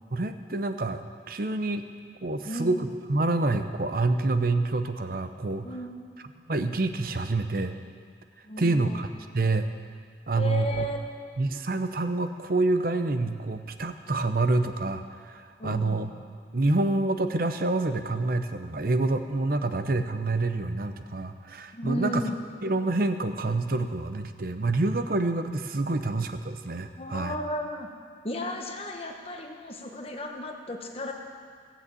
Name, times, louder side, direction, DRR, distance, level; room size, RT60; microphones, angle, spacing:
voice 1, 0.1-1.0 1.3-1.8 2.2-5.7 6.5-7.8 8.6-9.1 9.3-9.7 10.3-10.9 11.4-16.1 16.5-22.2 22.6-27.4, right 2 dB, 50° right, 9 dB, 0.7 m, -27 dB
voice 2, 2.4-2.7 5.6-6.1 8.4-9.0 10.4-11.1 15.6-16.0 21.7-22.4 27.0-27.9 28.2-31.1, equal, 30° left, 2 dB, 1.3 m, -34 dB
16.5 x 7.2 x 8.4 m, 2.1 s
head